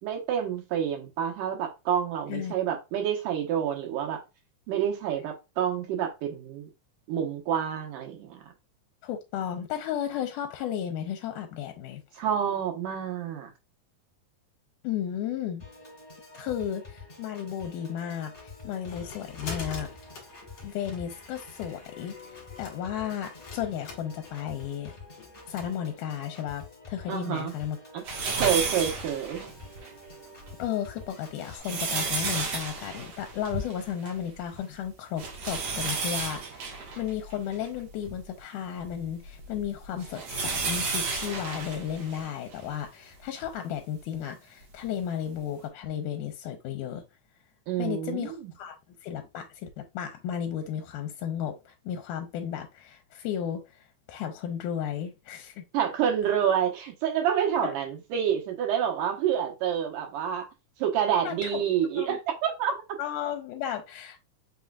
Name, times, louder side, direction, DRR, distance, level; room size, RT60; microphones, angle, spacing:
voice 1, 0.0-4.2 4.7-6.7 7.1-8.4 12.2-13.5 27.1-27.5 27.9-28.0 28.3-29.4 47.7-48.5 55.7-60.5 60.8-62.7, right 9 dB, 75° right, 2.6 m, -28 dB
voice 2, 9.0-12.0 14.8-15.6 16.3-19.9 20.6-24.9 25.5-28.1 28.4-28.6 30.6-47.0 47.8-48.8 49.0-55.7 57.6-57.7 61.2-61.6 62.0-62.2 63.0-64.2, left 9 dB, 80° left, 2.1 m, -34 dB
Piano / Organ, 15.6-31.6, left 3 dB, 20° left, 2.6 m, -48 dB
sound 1, 18.3-25.7, left 4 dB, 55° left, 2.3 m, -44 dB
sound 2, 28.1-29.9 30.4-30.5 31.3-34.3 34.5-34.6 35.2-38.2 38.8-42.7 43.4-43.5 44.8-44.9, right 4 dB, 55° right, 2.2 m, -32 dB
5.6 x 3.8 x 2.3 m
omnidirectional pair, 3.8 m